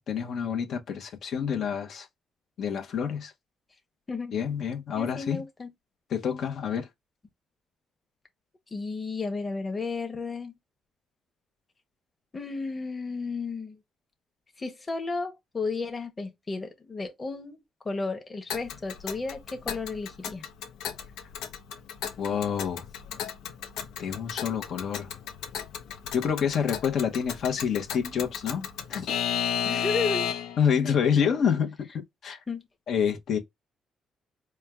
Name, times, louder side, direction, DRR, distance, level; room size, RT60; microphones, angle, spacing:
voice 1, 0.0-2.1 2.6-3.3 4.3-5.4 6.1-6.9 22.2-22.8 24.0-25.1 26.1-29.1 30.6-32.4 32.9-33.4, left 7 dB, 65° left, 1.0 m, -28 dB
voice 2, 4.9-5.7 8.7-10.5 12.3-13.8 14.6-17.6 17.8-20.5 29.6-30.3 30.8-31.0 32.5-32.7, left 4 dB, 30° left, 1.2 m, -33 dB
Alarm / Clock, 18.5-30.7, left 8 dB, 90° left, 0.8 m, -34 dB
4.4 x 2.3 x 3.6 m
cardioid pair, 90°, 0 cm